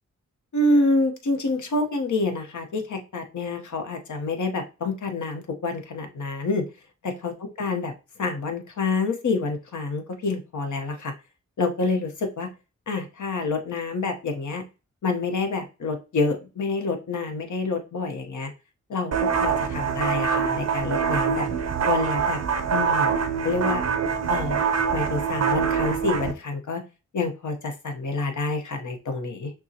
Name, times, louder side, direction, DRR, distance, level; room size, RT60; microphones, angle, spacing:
voice 1, 0.5-6.6 7.0-7.9 8.2-11.1 11.6-12.5 12.9-14.6 15.0-18.5 18.9-21.5 21.9-22.4 22.7-23.2 23.4-23.8 24.3-26.8 27.1-29.5, left 3 dB, 70° left, 5 dB, 0.9 m, -27 dB
sound 1, 19.1-26.3, right 6 dB, 55° right, 0.6 m, -24 dB
5.9 x 2.0 x 2.8 m, 0.30 s
cardioid pair, 45°, 30 cm